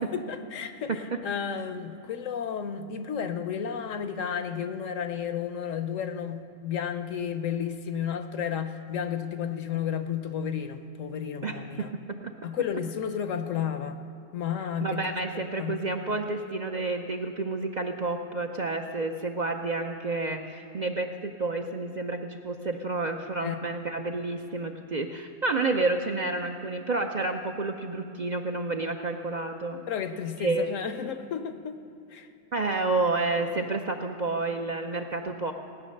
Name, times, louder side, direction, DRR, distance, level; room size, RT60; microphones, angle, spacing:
voice 1, 0.0-11.9 12.4-14.0 14.3-15.0 15.3-15.8 23.4-23.6 29.9-31.8 32.1-32.3, left 8 dB, 75° left, 9 dB, 1.1 m, -32 dB
voice 2, 11.4-12.3 14.8-29.8 30.4-30.7 32.5-35.5, right 3 dB, 45° right, 4 dB, 0.6 m, -30 dB
17.0 x 9.3 x 6.6 m, 2.7 s
omnidirectional pair, 1.4 m